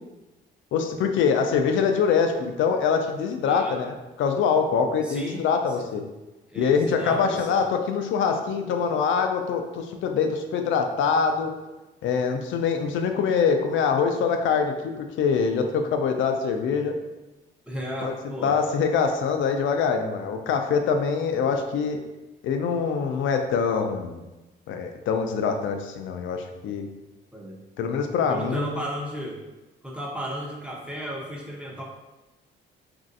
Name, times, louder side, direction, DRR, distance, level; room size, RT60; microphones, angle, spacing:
voice 1, 0.7-6.0 6.6-11.5 12.0-17.0 18.0-18.1 18.4-22.0 22.4-24.2 24.7-26.9 27.8-28.8, left 6 dB, 75° left, 5 dB, 0.4 m, -24 dB
voice 2, 3.4-3.8 5.0-5.4 5.8-5.9 6.5-7.6 17.7-18.6 27.3-27.6 28.2-29.4 29.8-31.8, equal, 5° right, -2 dB, 0.7 m, -34 dB
3.1 x 2.5 x 2.5 m, 1.1 s
cardioid pair, 90°, 20 cm